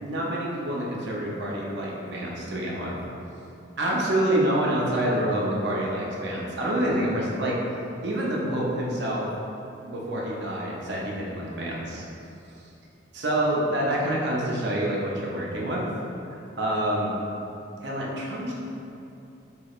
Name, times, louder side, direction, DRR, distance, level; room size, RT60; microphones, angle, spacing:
voice 1, 0.0-2.9 3.8-7.6 8.0-9.3 9.8-12.0 13.1-15.9 16.3-17.1 17.8-18.5, right 1 dB, 60° right, -4 dB, 0.6 m, -27 dB
4.6 x 3.1 x 2.4 m, 2.8 s
head